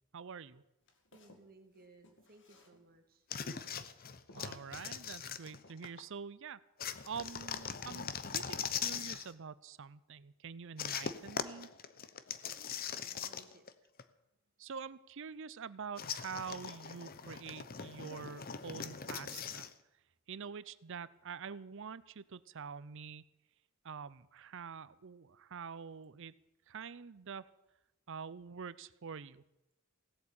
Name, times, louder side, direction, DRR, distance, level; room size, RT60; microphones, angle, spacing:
voice 1, 0.1-0.6 4.3-6.6 7.0-11.7 14.6-19.7 20.3-23.3 23.8-26.3 26.7-27.5 28.1-29.4, right 6 dB, 60° right, 18 dB, 0.6 m, -46 dB
Walk footsteps, 0.8-3.1 3.5-3.9 4.3-4.9 5.5-6.0, left 1 dB, 60° left, 2.1 m, -61 dB
voice 2, 1.1-3.2 12.5-13.6, right 2 dB, 45° right, 5 dB, 2.1 m, -61 dB
sound 1, 3.3-6.0 6.8-9.3 10.8-13.7 14.0-14.1 16.0-19.7, left 7 dB, 45° left, 0.8 m, -41 dB
17.0 x 8.4 x 8.7 m, 0.93 s
head